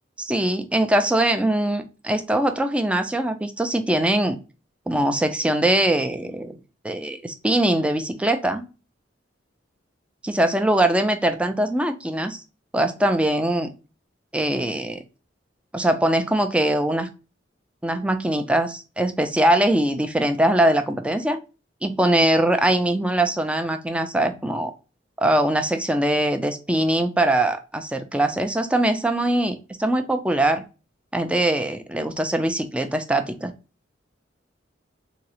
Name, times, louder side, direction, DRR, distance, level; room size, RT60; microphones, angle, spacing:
voice 1, 0.2-4.4 4.9-6.6 6.8-8.7 10.2-12.4 12.7-13.7 14.3-15.0 15.7-17.1 17.8-21.4 21.8-24.7 25.2-30.6 31.1-33.5, right 1 dB, 5° right, 7 dB, 0.3 m, -22 dB
3.5 x 2.0 x 2.7 m, 0.32 s
head